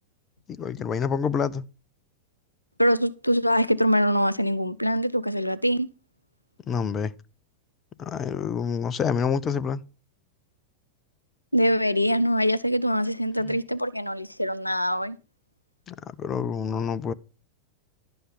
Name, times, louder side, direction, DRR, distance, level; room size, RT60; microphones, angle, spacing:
voice 1, 0.5-1.6 6.7-7.1 8.0-9.8 13.4-13.6 15.9-17.1, left 6 dB, 25° left, 0.6 m, -27 dB
voice 2, 2.8-5.9 11.5-15.2, equal, 90° left, 0.6 m, -23 dB
11.5 x 8.0 x 5.1 m
figure-of-eight pair, 90°, 0 cm